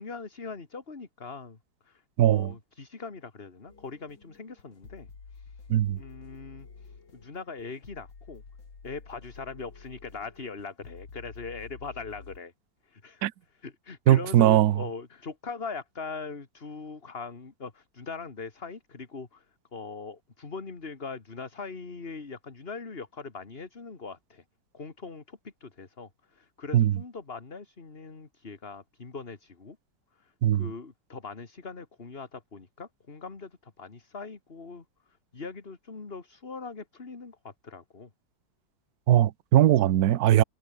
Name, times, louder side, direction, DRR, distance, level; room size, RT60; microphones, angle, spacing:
voice 1, 0.0-1.6 1.8-5.6 6.0-8.4 8.8-12.5 12.8-19.5 19.7-24.4 24.7-29.8 30.1-34.8 35.3-38.1, left 4 dB, 30° left, 2.2 m, -41 dB
voice 2, 2.2-2.5 5.7-6.0 13.2-13.3 14.1-14.7 26.7-26.9 30.4-30.6 39.1-40.4, right 12 dB, 60° right, 1.1 m, -20 dB
sound 1, 3.7-12.4, left 5 dB, 85° left, 4.1 m, -49 dB
omnidirectional pair, 2.1 m